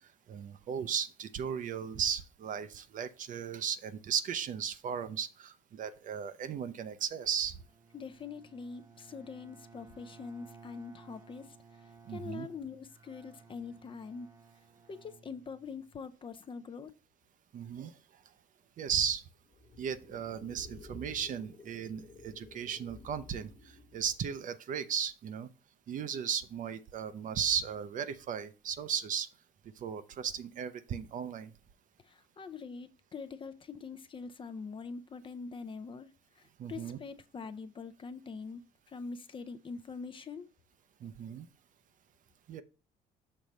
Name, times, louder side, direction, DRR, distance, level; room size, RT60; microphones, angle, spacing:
voice 1, 0.0-7.6 12.1-12.5 17.5-18.0 18.8-19.2 19.8-25.5 25.9-29.3 29.8-31.5 36.6-37.0 41.0-41.5 42.5-42.6, right 8 dB, 50° right, 0.6 m, -36 dB
Bowed string instrument, 7.6-16.0, right 5 dB, 15° right, 0.9 m, -57 dB
voice 2, 7.9-14.3 14.9-16.9 32.0-38.6 38.9-40.5, left 5 dB, 30° left, 0.5 m, -44 dB
sound 1, 19.5-24.3, left 2 dB, 50° left, 1.0 m, -53 dB
6.6 x 3.0 x 5.2 m
cardioid pair, 110°, 17 cm